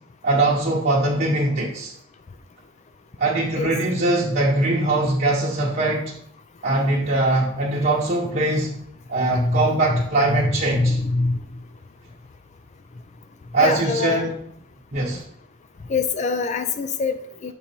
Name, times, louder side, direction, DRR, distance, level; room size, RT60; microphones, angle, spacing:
voice 1, 0.2-1.9 3.2-6.0 6.6-8.7 9.1-11.0 13.5-14.3 14.9-15.2, right 2 dB, 45° right, -5 dB, 0.9 m, -21 dB
voice 2, 9.2-10.0 10.3-11.4 13.6-14.2 15.9-17.5, left 3 dB, 35° left, 9 dB, 0.4 m, -24 dB
6.9 x 3.9 x 4.4 m, 0.70 s
head